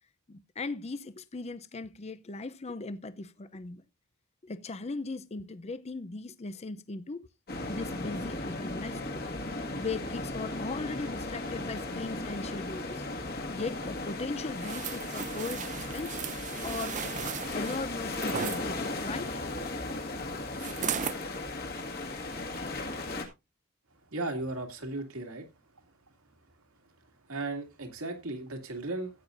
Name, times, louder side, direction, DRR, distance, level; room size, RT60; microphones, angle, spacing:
voice 1, 0.3-3.8 4.4-7.3 7.7-9.2 9.8-13.0 13.5-16.2 16.6-17.0 17.5-19.4, left 3 dB, 30° left, 0.6 m, -38 dB
sound 1, 7.5-23.2, left 2 dB, 45° left, 1.9 m, -36 dB
sound 2, 14.6-18.6 20.6-21.2 21.7-21.9, right 8 dB, 35° right, 0.5 m, -36 dB
voice 2, 24.1-25.4 27.3-29.1, right 2 dB, 80° right, 2.4 m, -35 dB
15.0 x 9.0 x 2.6 m
head